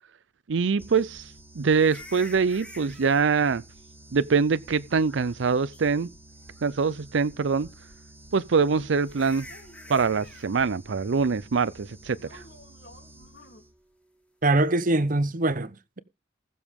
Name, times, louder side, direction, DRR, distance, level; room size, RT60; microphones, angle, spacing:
voice 1, 0.5-3.6 4.1-6.1 6.6-7.7 8.3-9.4 9.9-12.4, right 5 dB, 80° right, 0.5 m, -24 dB
sound 1, 0.8-13.9, right 1 dB, 10° right, 1.4 m, -51 dB
sound 2, 1.8-3.2 4.9-5.4 5.7-5.8 6.5-7.0 8.4-8.5 9.1-10.5 14.6-14.8, left 1 dB, 5° left, 1.9 m, -47 dB
sound 3, 9.1-10.4 12.2-13.6, left 1 dB, 60° left, 3.8 m, -52 dB
voice 2, 14.4-16.0, right 2 dB, 45° right, 0.9 m, -23 dB
20.0 x 7.0 x 3.6 m
head